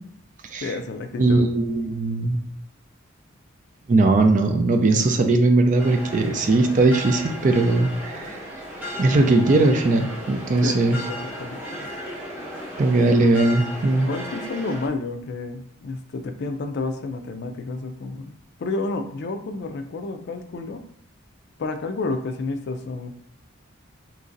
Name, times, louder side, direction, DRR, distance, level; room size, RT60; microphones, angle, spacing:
voice 1, 0.6-1.5 10.6-11.9 14.0-18.3 18.6-20.8 21.6-23.1, left 3 dB, 55° left, 6 dB, 0.4 m, -30 dB
voice 2, 1.2-2.4 3.9-8.4 9.0-11.0 12.8-14.1, right 2 dB, 40° right, 5 dB, 0.4 m, -19 dB
sound 1, 5.8-14.9, equal, 10° right, 0.8 m, -35 dB
3.0 x 2.6 x 3.8 m, 0.65 s
head